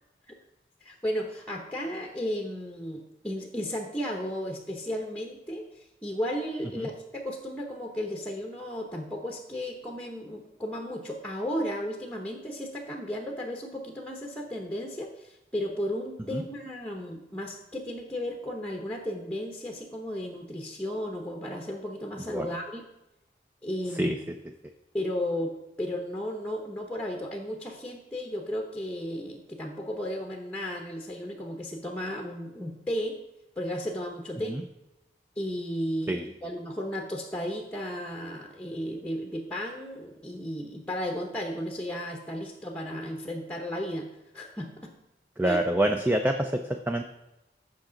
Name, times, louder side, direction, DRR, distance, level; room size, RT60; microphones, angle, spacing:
voice 1, 0.8-22.8 23.6-24.2 24.9-33.2 33.6-34.6 35.4-44.1 44.3-44.9 45.4-45.6, equal, 5° left, 2 dB, 0.9 m, -34 dB
voice 2, 45.4-47.0, right 1 dB, 10° right, 5 dB, 0.4 m, -26 dB
14.5 x 5.9 x 3.9 m, 0.93 s
head